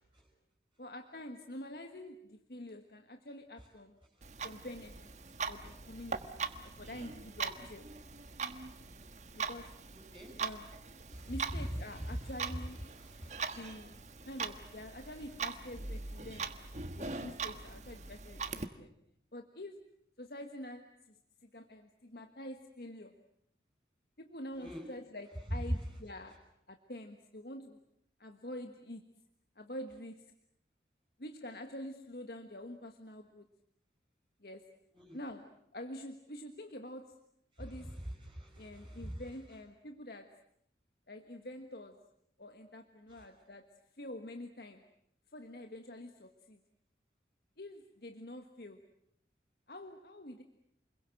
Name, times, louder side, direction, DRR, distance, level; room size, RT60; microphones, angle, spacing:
voice 1, 0.8-4.0 4.4-5.1 5.5-6.4 6.8-7.9 9.3-9.7 10.4-10.7 11.3-12.8 13.5-14.0 14.3-16.5 17.0-18.9 19.3-19.8 20.2-23.1 24.2-26.4 26.7-27.8 28.2-29.0 29.6-30.2 31.2-33.5 34.4-34.7 35.1-37.1 37.6-37.9 38.6-40.3 41.1-42.0 42.4-43.6 44.0-44.8 45.3-46.6 47.6-48.8 49.7-50.4, left 1 dB, 60° left, 6 dB, 1.5 m, -47 dB
Clock, 4.2-18.6, right 5 dB, 40° right, 1.4 m, -42 dB
voice 2, 9.9-10.4 11.1-11.6 12.9-13.4 24.6-24.9 34.9-35.2 38.2-39.2 43.1-43.2, equal, 25° right, 0 dB, 5.1 m, -46 dB
29.5 x 22.0 x 7.7 m, 0.74 s
head